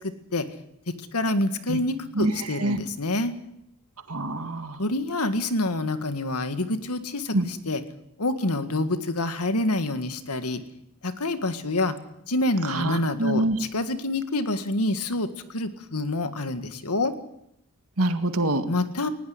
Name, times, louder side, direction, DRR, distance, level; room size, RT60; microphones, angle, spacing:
voice 1, 1.1-3.3 4.8-7.8 8.2-10.6 11.0-11.9 12.3-17.1 18.7-19.1, left 2 dB, 90° left, 10 dB, 1.8 m, -27 dB
voice 2, 4.1-4.8 7.3-7.5 12.7-13.6 18.0-18.7, right 2 dB, 80° right, 8 dB, 2.1 m, -25 dB
19.5 x 16.5 x 9.6 m, 0.80 s
head